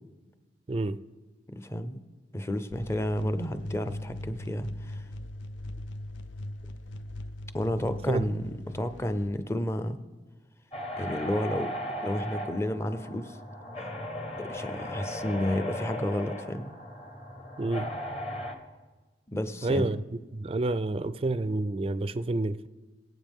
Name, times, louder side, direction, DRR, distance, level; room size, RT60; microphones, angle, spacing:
voice 1, 0.7-1.0 8.1-8.3 17.6-17.9 19.6-20.0 20.3-22.7, right 2 dB, 30° right, 14 dB, 0.4 m, -28 dB
voice 2, 1.5-2.0 2.3-5.0 7.5-10.0 11.0-11.7 12.0-13.4 14.4-16.7 19.3-19.9, left 1 dB, 15° left, 10 dB, 0.6 m, -31 dB
sound 1, 2.7-9.3, left 1 dB, 85° left, 0.5 m, -39 dB
sound 2, 10.7-18.5, equal, 35° left, 1.4 m, -37 dB
23.5 x 8.0 x 3.6 m, 1.3 s
head